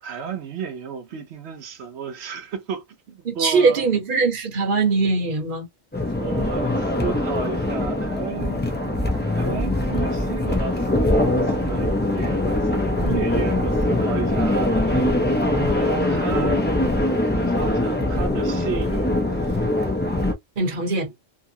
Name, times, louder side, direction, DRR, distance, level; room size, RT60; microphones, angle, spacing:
voice 1, 0.0-3.9 6.2-8.7 9.3-15.2 15.6-16.7 17.3-19.6 20.6-21.1, right 6 dB, 90° right, 1.0 m, -33 dB
voice 2, 3.2-5.7 20.6-21.1, right 4 dB, 55° right, 1.1 m, -21 dB
sound 1, 5.9-20.3, left 1 dB, 15° left, 0.5 m, -22 dB
2.7 x 2.4 x 2.7 m
omnidirectional pair, 1.1 m